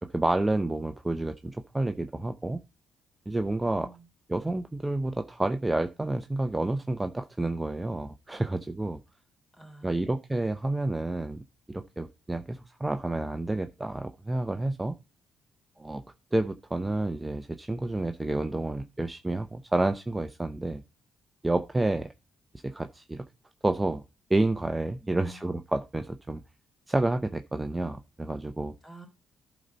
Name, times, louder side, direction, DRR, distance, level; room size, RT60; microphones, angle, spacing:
voice 1, 0.0-2.6 3.3-3.9 4.3-9.0 9.8-15.0 15.8-16.0 16.3-20.8 21.4-22.1 22.6-23.2 23.6-24.0 24.3-26.4 26.9-28.7, right 2 dB, 15° right, 8 dB, 0.6 m, -29 dB
voice 2, 3.6-4.1 9.5-10.1 25.0-25.4 28.8-29.1, right 1 dB, 15° left, 3 dB, 3.3 m, -49 dB
11.0 x 4.0 x 5.3 m, 0.27 s
cardioid pair, 90°, 0 cm